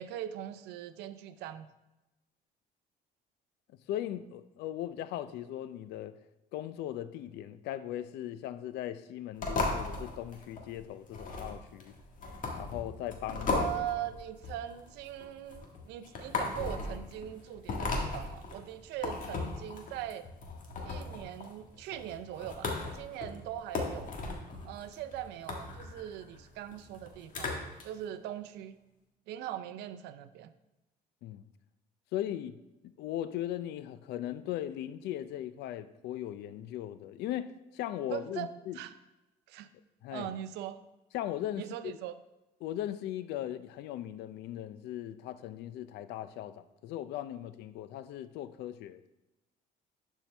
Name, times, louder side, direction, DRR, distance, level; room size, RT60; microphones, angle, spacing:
voice 1, 0.0-1.7 13.5-20.3 20.8-24.1 24.6-28.8 29.3-30.5 38.1-38.5 38.7-38.9 39.5-39.7 40.1-40.8 41.6-42.1, right 12 dB, 85° right, 0.5 m, -41 dB
voice 2, 3.9-6.2 6.5-11.9 12.5-13.7 31.2-31.4 32.1-32.6 32.8-38.8 40.0-40.3 41.1-41.9 42.6-49.0, left 12 dB, 80° left, 0.5 m, -38 dB
sound 1, 9.4-27.8, left 3 dB, 50° left, 1.6 m, -37 dB
11.5 x 4.6 x 3.4 m
cardioid pair, 110°, 17 cm